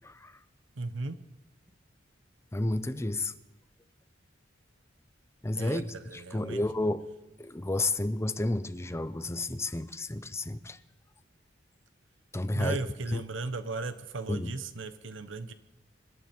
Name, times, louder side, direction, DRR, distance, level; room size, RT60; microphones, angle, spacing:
voice 1, 0.0-0.4 2.5-3.3 5.4-7.1 7.4-10.8 12.3-12.8 13.1-13.2 14.3-14.5, left 2 dB, 15° left, 0.6 m, -31 dB
voice 2, 0.8-1.2 5.5-6.6 12.5-15.5, right 3 dB, 75° right, 1.0 m, -36 dB
26.0 x 12.5 x 4.5 m
head